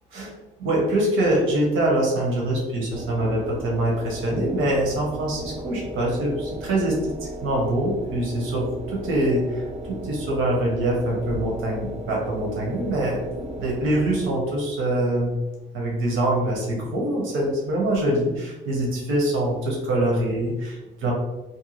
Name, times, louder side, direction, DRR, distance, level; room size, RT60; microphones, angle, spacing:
voice 1, 0.6-15.4 15.7-21.1, right 1 dB, 85° right, -2 dB, 0.8 m, -24 dB
sound 1, 2.9-14.6, right 1 dB, 35° right, 0.4 m, -36 dB
2.6 x 2.2 x 2.9 m, 1.1 s
cardioid pair, 90°, 20 cm